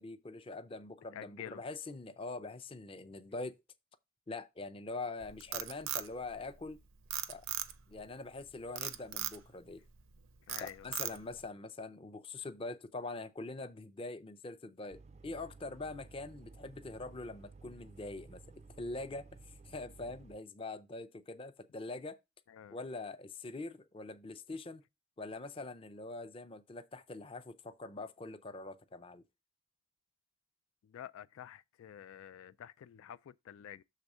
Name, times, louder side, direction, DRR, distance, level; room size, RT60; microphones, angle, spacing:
voice 1, 0.0-3.6 4.3-6.8 7.3-7.4 7.9-9.8 10.6-18.4 18.8-19.2 19.7-22.2 22.7-24.8 25.2-29.2, left 3 dB, 25° left, 0.5 m, -43 dB
voice 2, 1.1-1.6 10.5-10.9 22.5-22.8 30.8-33.8, left 10 dB, 85° left, 0.3 m, -49 dB
Frog, 5.2-6.7 7.1-8.0 8.8-9.4 9.9-10.2 10.5-11.4, right 11 dB, 80° right, 0.6 m, -38 dB
sound 1, 14.9-20.4, right 3 dB, 30° right, 0.3 m, -55 dB
6.6 x 3.5 x 6.0 m
head